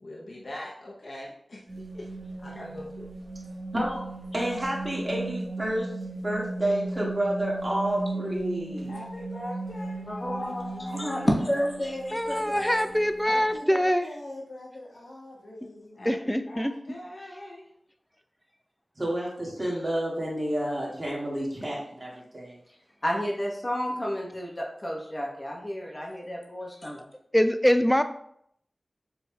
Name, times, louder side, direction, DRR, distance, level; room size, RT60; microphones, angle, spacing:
voice 1, 0.0-2.1 2.4-3.1 8.9-11.3 16.0-17.7, left 1 dB, 65° left, -3 dB, 0.7 m, -42 dB
sound 1, 1.7-13.6, right 2 dB, 70° right, 1.1 m, -37 dB
voice 2, 3.7-4.1 4.3-5.9 6.2-9.0 19.0-22.6, right 1 dB, 35° right, -4 dB, 1.8 m, -30 dB
voice 3, 10.1-13.1 23.0-27.1, equal, 30° left, -1 dB, 1.1 m, -31 dB
voice 4, 12.1-14.1 16.1-16.7 27.3-28.0, equal, 5° left, 9 dB, 0.4 m, -23 dB
voice 5, 13.3-16.0, left 1 dB, 90° left, -4 dB, 1.4 m, -42 dB
6.8 x 3.4 x 2.3 m, 0.70 s
wide cardioid pair, 60°, 0 cm